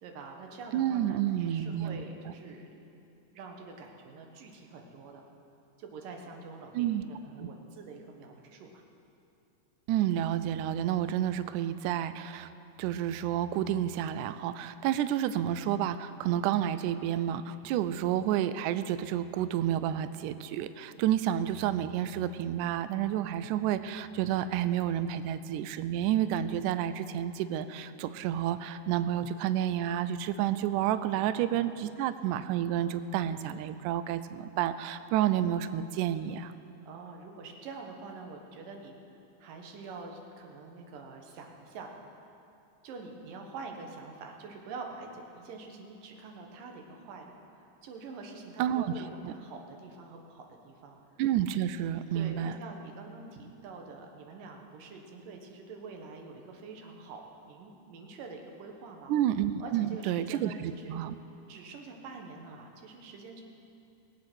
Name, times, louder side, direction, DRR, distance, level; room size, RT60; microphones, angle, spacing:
voice 1, 0.0-2.8 3.3-5.3 5.8-8.8 31.1-31.5 36.9-39.0 39.4-41.9 42.8-51.0 52.1-59.1 59.6-61.0 61.5-63.4, right 4 dB, 70° right, 2 dB, 2.8 m, -46 dB
voice 2, 0.7-2.0 6.7-7.0 7.4-7.5 9.9-12.5 12.8-36.5 48.6-49.3 51.2-52.5 59.1-61.1, right 11 dB, 90° right, 13 dB, 1.8 m, -30 dB
20.0 x 8.4 x 6.2 m, 2.8 s
omnidirectional pair, 4.1 m